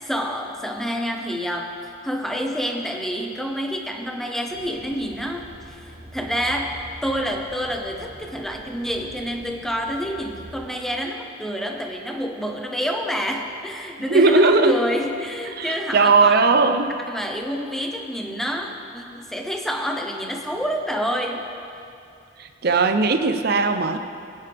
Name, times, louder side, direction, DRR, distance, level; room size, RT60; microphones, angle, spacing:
voice 1, 0.0-16.7 17.1-21.5, equal, ahead, 2 dB, 0.8 m, -28 dB
sound 1, 4.5-10.7, right 1 dB, 35° right, 1.3 m, -44 dB
voice 2, 14.1-14.8 15.6-17.0 22.4-24.0, right 3 dB, 50° right, 8 dB, 0.6 m, -18 dB
18.5 x 10.0 x 3.5 m, 2.6 s
head